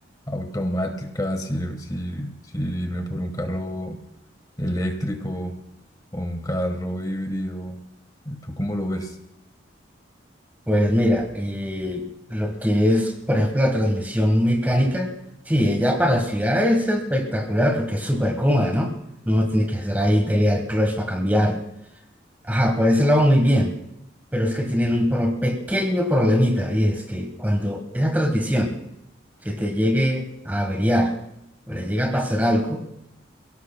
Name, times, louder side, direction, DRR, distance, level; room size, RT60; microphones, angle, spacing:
voice 1, 0.3-4.0 4.6-5.5 6.1-7.8 8.2-9.2, equal, 20° left, 5 dB, 1.4 m, -28 dB
voice 2, 10.7-12.0 12.3-15.1 15.5-18.9 19.3-21.6 22.4-23.8 24.3-28.8 29.4-31.1 31.7-32.8, equal, 10° right, 3 dB, 1.3 m, -21 dB
28.5 x 17.5 x 2.2 m, 0.81 s
head